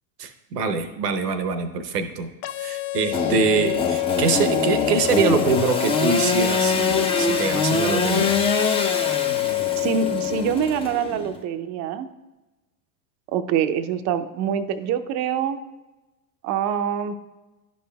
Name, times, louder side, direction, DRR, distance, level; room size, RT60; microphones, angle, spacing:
voice 1, 0.2-2.3 2.6-8.4, right 4 dB, 80° right, 10 dB, 0.9 m, -24 dB
sound 1, 2.4-10.4, left 28 dB, 65° left, 0.6 m, -27 dB
Engine / Sawing, 3.1-11.4, left 3 dB, 10° left, 0.5 m, -24 dB
voice 2, 9.4-12.1 13.3-15.6 16.4-17.1, right 8 dB, 35° right, 11 dB, 0.5 m, -25 dB
11.5 x 5.3 x 2.2 m, 1.1 s
hypercardioid pair, 90°, 47 cm